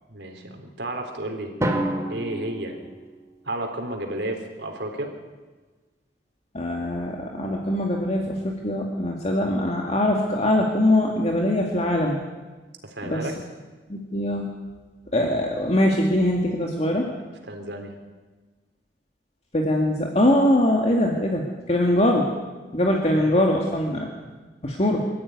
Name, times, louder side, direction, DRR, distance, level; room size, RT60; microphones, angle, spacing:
voice 1, 0.1-1.5 2.1-2.8 3.4-5.1 12.8-13.4 17.5-17.9, right 1 dB, 70° right, 4 dB, 3.7 m, -32 dB
Drum, 1.6-3.6, right 1 dB, 15° right, 2.7 m, -29 dB
voice 2, 6.5-12.2 13.0-13.3 13.9-14.5 15.1-17.1 19.5-22.3 22.7-24.1 24.6-25.1, left 1 dB, 35° left, 0 dB, 2.2 m, -22 dB
24.5 x 14.0 x 9.6 m, 1.3 s
head